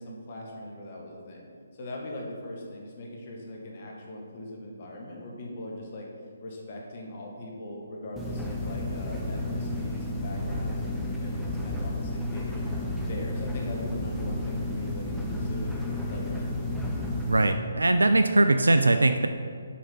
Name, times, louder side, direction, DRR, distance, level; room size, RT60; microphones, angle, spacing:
voice 1, 0.0-1.5 1.8-6.1 6.4-12.6 13.0-16.6, left 1 dB, 45° left, -1 dB, 1.7 m, -40 dB
sound 1, 8.2-17.5, left 1 dB, ahead, 0.9 m, -32 dB
voice 2, 17.3-19.3, right 2 dB, 80° right, 8 dB, 0.4 m, -21 dB
7.1 x 5.7 x 5.7 m, 2.2 s
figure-of-eight pair, 145°, 0 cm